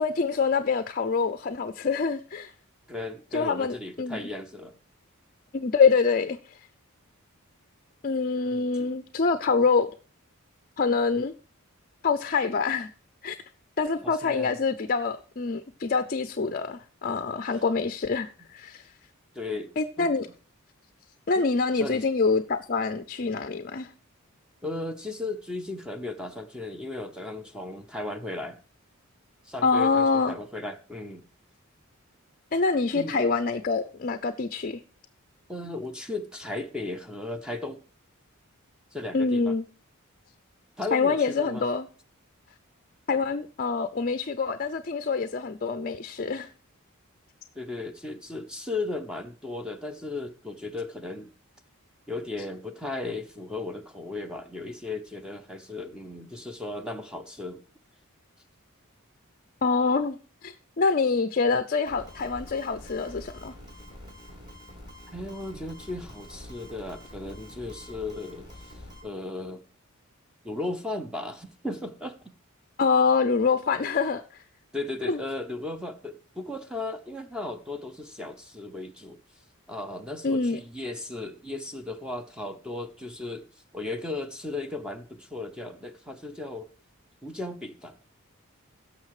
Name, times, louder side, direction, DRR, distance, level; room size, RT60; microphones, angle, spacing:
voice 1, 0.0-2.5 3.3-4.2 5.5-6.6 8.0-9.9 10.8-11.3 12.0-12.9 13.2-13.4 13.8-18.9 19.8-20.3 21.3-23.9 29.6-30.3 32.5-34.8 39.1-39.6 40.9-41.9 43.1-46.5 59.6-60.2 60.4-63.5 72.8-74.4 75.1-75.2 80.2-80.6, left 4 dB, 40° left, 0.5 m, -25 dB
voice 2, 2.9-4.7 8.5-8.9 14.0-14.6 19.3-20.1 21.4-21.5 21.7-22.0 24.6-28.6 29.4-31.2 32.9-33.2 35.5-37.8 38.9-39.5 40.8-41.6 47.5-51.3 52.1-57.6 65.1-69.6 70.4-72.3 74.7-79.2 79.7-83.5 83.7-86.7 87.2-88.0, left 2 dB, 5° right, 0.7 m, -36 dB
sound 1, 61.9-69.0, left 1 dB, 20° right, 4.6 m, -46 dB
16.5 x 6.5 x 4.8 m
head